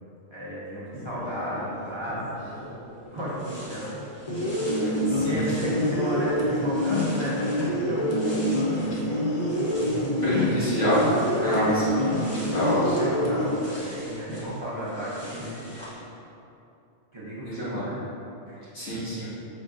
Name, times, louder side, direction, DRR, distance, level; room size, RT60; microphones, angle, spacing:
voice 1, 0.3-4.0 5.2-8.6 10.3-10.8 11.4-12.0 12.4-15.5 17.1-18.0 18.5-18.6, equal, 30° right, -9 dB, 0.6 m, -34 dB
sound 1, 0.9-16.0, equal, ahead, 0.9 m, -43 dB
sound 2, 2.9-3.0 3.2-9.0 9.3-16.0, equal, 25° left, 0.9 m, -46 dB
sound 3, 4.3-13.6, equal, 45° left, 0.3 m, -26 dB
voice 2, 4.8-5.7 10.2-11.0 11.4-11.8 12.3-12.9 17.5-17.8 18.7-19.3, left 1 dB, 90° left, -12 dB, 2.0 m, -27 dB
5.1 x 3.6 x 2.5 m, 2.8 s
omnidirectional pair, 1.2 m